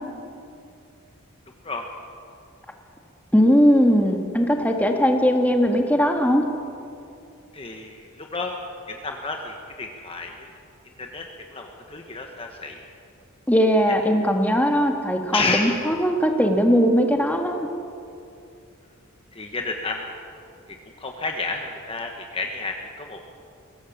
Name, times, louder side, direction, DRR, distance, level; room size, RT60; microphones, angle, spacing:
voice 1, 3.3-6.4 13.5-17.7, equal, 5° left, 3 dB, 1.6 m, -19 dB
voice 2, 7.5-8.6 8.9-10.5 11.0-12.8 15.3-15.8 19.3-20.0 20.7-23.2, left 3 dB, 25° left, 3 dB, 1.2 m, -30 dB
22.5 x 17.5 x 7.3 m, 2.6 s
head